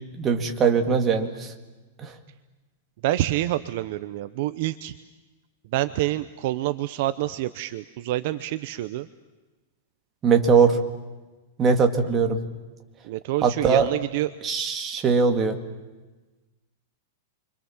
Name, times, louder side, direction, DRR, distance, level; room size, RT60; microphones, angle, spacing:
voice 1, 0.1-1.5 2.0-2.1 10.2-10.8 11.6-12.4 13.4-13.9 14.4-15.6, right 5 dB, 15° right, 4 dB, 2.1 m, -21 dB
voice 2, 3.0-4.9 5.6-9.1 13.0-14.3, right 15 dB, 45° right, 12 dB, 0.8 m, -27 dB
29.5 x 25.0 x 7.3 m, 1.2 s
supercardioid pair, 175°, 0 cm